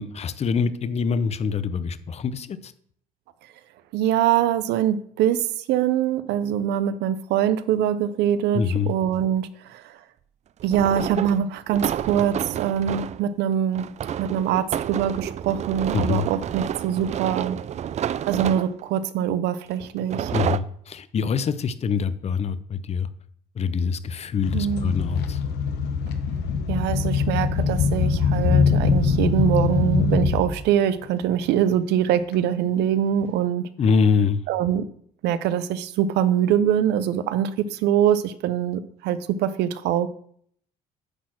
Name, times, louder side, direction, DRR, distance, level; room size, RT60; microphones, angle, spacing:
voice 1, 0.0-2.7 8.5-8.9 15.9-16.3 20.3-23.1 23.6-25.4 33.8-34.4, left 6 dB, 40° left, 14 dB, 0.7 m, -24 dB
voice 2, 3.9-9.9 10.6-13.9 14.2-17.6 18.3-20.3 24.5-25.0 26.7-33.7 34.5-34.8 35.2-40.1, right 10 dB, 85° right, 14 dB, 0.8 m, -23 dB
sound 1, 7.9-8.0 10.6-13.2 13.7-19.0 19.8-20.6, right 9 dB, 45° right, 0.4 m, -29 dB
sound 2, 24.4-30.6 31.2-31.4 32.3-32.4 33.2-33.3, left 5 dB, 80° left, 1.1 m, -22 dB
9.9 x 4.3 x 7.7 m, 0.64 s
cardioid pair, 110°, 17 cm